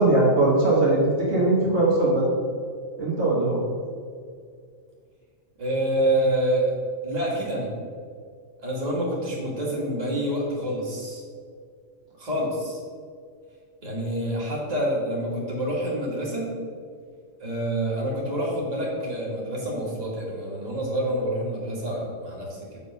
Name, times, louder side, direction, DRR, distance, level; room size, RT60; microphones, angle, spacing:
voice 1, 0.0-2.3 3.0-3.6, right 2 dB, 55° right, -6 dB, 1.7 m, -20 dB
voice 2, 5.6-6.7 7.0-7.7 8.6-11.2 12.2-12.8 13.8-16.5 17.4-22.8, right 1 dB, 30° right, -5 dB, 1.9 m, -27 dB
7.0 x 5.5 x 5.4 m, 2.2 s
omnidirectional pair, 1.4 m